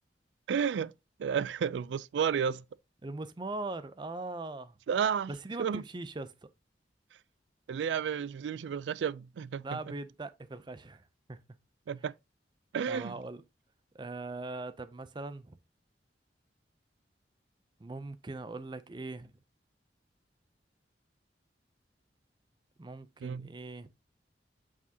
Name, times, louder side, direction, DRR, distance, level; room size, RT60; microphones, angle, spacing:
voice 1, 0.5-0.9 1.2-2.6 4.9-5.3 5.6-5.8 7.7-9.6 11.9-12.1 12.7-13.1 23.2-23.5, right 7 dB, 85° right, 0.3 m, -31 dB
voice 2, 3.0-4.7 5.3-6.5 9.6-11.0 11.3-11.4 12.9-13.4 13.9-15.6 17.8-19.3 22.8-23.9, right 2 dB, 25° right, 0.5 m, -40 dB
8.1 x 4.9 x 2.8 m
head